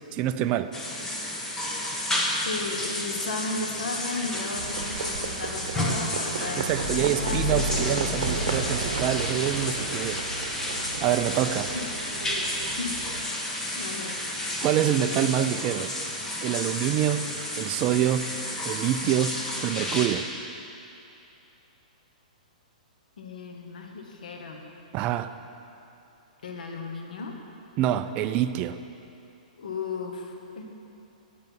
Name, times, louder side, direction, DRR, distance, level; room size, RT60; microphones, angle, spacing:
voice 1, 0.1-0.7 6.6-10.3 11.0-11.7 14.6-15.9 16.4-17.3 17.6-18.3 18.6-20.3 24.9-25.3 27.8-28.8, right 11 dB, 30° right, 11 dB, 0.3 m, -26 dB
sound 1, 0.7-20.1, left 1 dB, 10° left, 1.0 m, -31 dB
voice 2, 2.4-8.4 11.0-11.2 12.8-13.0 13.7-14.2 23.2-24.6 26.4-27.3 29.6-30.7, left 3 dB, 80° left, 2 dB, 1.2 m, -35 dB
Livestock farm animals working animals, 4.5-13.2, right 5 dB, 70° right, 0.9 m, -34 dB
sound 2, 6.8-9.8, left 4 dB, 50° left, 0.8 m, -34 dB
8.9 x 7.7 x 5.4 m, 2.8 s
hypercardioid pair, 150°, 4 cm